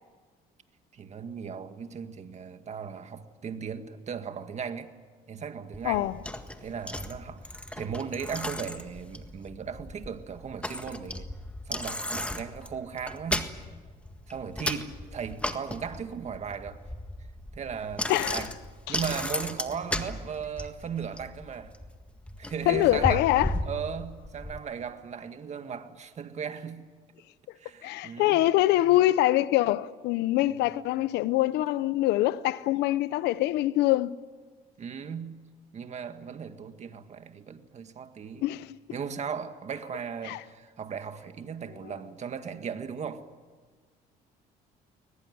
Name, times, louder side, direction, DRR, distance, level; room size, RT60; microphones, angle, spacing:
voice 1, 0.9-4.9 5.3-6.1 6.6-11.3 11.7-13.5 14.3-16.8 17.5-18.5 18.9-21.7 22.4-23.3 23.6-26.9 27.6-28.4 34.8-35.4 35.7-38.4 38.9-43.2, right 7 dB, 40° right, 1.9 m, -37 dB
Bicycle, 5.7-24.6, left 1 dB, 5° left, 1.7 m, -36 dB
voice 2, 5.8-6.2 18.1-18.4 18.9-19.0 22.7-23.5 27.8-34.2 38.4-38.8 40.2-40.4 41.8-41.9, left 15 dB, 85° left, 0.8 m, -24 dB
21.5 x 20.5 x 9.5 m
cardioid pair, 110°, 17 cm